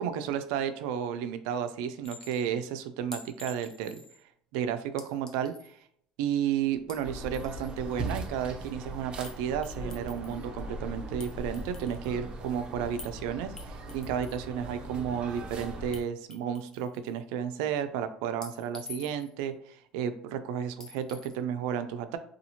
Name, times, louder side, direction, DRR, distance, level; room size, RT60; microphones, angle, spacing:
voice 1, 0.0-4.0 4.5-5.8 6.2-22.2, right 8 dB, 85° right, 10 dB, 0.3 m, -32 dB
Chink clink, 2.0-2.5 3.1-4.2 5.0-5.7 6.7-7.7 9.2-9.4 9.6-10.4 11.2-12.2 13.0-13.1 13.6-14.4 15.9-16.0 16.3-17.2 18.4-19.4 20.8-21.4, left 3 dB, 20° left, 0.6 m, -47 dB
sound 1, 7.0-16.0, right 2 dB, 35° right, 0.5 m, -40 dB
2.7 x 2.3 x 2.8 m, 0.65 s
cardioid pair, 120°, 3 cm